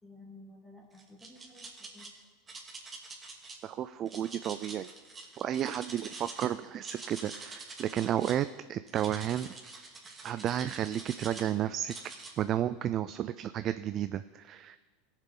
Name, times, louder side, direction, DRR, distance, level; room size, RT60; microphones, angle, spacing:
voice 1, 0.0-2.1, left 2 dB, 15° left, -3 dB, 2.9 m, -53 dB
sound 1, 0.9-2.1 2.5-3.6 4.1-6.5 6.7-8.4 8.9-11.5 11.9-12.3, right 3 dB, 20° right, 2.3 m, -46 dB
voice 2, 3.6-4.9 5.4-9.5 10.2-11.9 12.4-14.8, right 11 dB, 45° right, 13 dB, 0.4 m, -32 dB
17.5 x 7.3 x 3.9 m, 1.4 s
hypercardioid pair, 95°, 0 cm